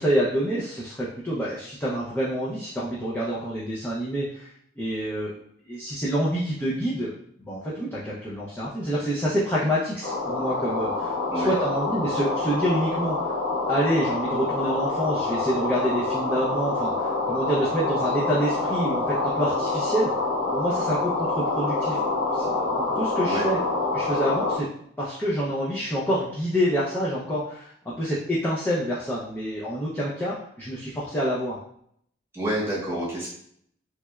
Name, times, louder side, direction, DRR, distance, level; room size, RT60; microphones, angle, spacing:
voice 1, 0.0-4.5 4.8-5.3 5.7-7.1 7.4-13.2 13.7-20.1 20.5-22.0 22.3-23.6 23.9-24.7 25.0-31.6, equal, 10° left, -7 dB, 0.4 m, -27 dB
sound 1, 10.0-24.6, left 3 dB, 40° left, 1.4 m, -27 dB
voice 2, 32.3-33.3, right 1 dB, 15° right, -7 dB, 1.0 m, -28 dB
3.3 x 3.0 x 2.2 m, 0.66 s
head